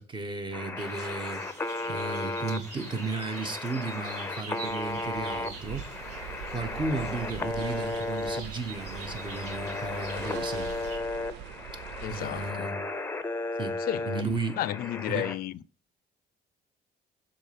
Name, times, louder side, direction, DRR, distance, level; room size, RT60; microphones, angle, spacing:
voice 1, 0.0-1.4 1.9-5.9 6.5-10.7 12.1-12.8 13.6-13.8 14.1-14.6 15.1-15.3, right 3 dB, 30° right, 1.2 m, -34 dB
sound 1, 0.5-15.4, left 3 dB, 15° left, 0.7 m, -35 dB
sound 2, 0.8-11.0, right 4 dB, 65° right, 3.3 m, -46 dB
sound 3, 4.6-12.5, right 11 dB, 90° right, 0.5 m, -43 dB
voice 2, 12.0-12.7 13.8-14.1 14.6-15.6, left 13 dB, 60° left, 0.5 m, -32 dB
7.0 x 4.0 x 5.9 m
cardioid pair, 110°, 17 cm